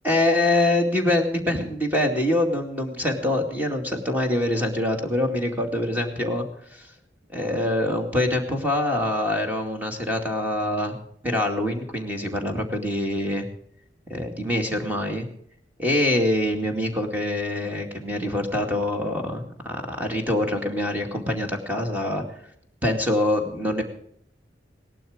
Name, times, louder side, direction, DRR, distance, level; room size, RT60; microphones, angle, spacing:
voice 1, 0.0-6.4 6.7-6.9 7.3-11.0 11.2-13.5 14.1-15.3 15.8-22.2 22.8-23.8, left 1 dB, 10° right, 3 dB, 2.3 m, -24 dB
18.0 x 12.0 x 5.0 m, 0.66 s
head